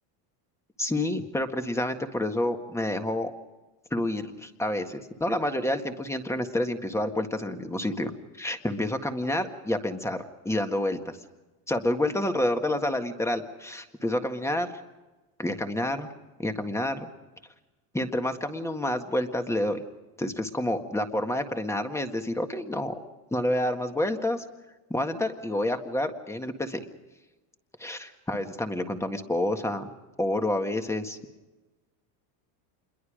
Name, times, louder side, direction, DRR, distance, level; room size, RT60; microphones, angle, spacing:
voice 1, 0.8-3.3 3.9-8.1 8.4-11.2 11.7-14.7 15.4-16.1 16.4-17.1 17.9-19.8 20.2-23.0 23.3-24.4 24.9-26.8 27.8-29.9 30.2-31.2, left 1 dB, 5° left, 6 dB, 1.7 m, -29 dB
27.5 x 22.0 x 5.1 m, 1.1 s
supercardioid pair, 135°, 49 cm